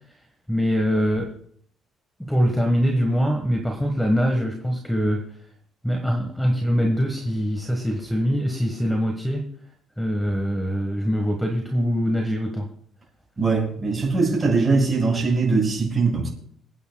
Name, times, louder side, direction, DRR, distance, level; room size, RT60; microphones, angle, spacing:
voice 1, 0.5-1.3 2.2-5.3 5.8-9.5 10.0-12.7, equal, ahead, 2 dB, 1.5 m, -23 dB
voice 2, 13.4-16.3, right 4 dB, 20° right, -3 dB, 7.0 m, -21 dB
28.5 x 9.6 x 2.3 m, 0.62 s
cardioid pair, 150°, 0 cm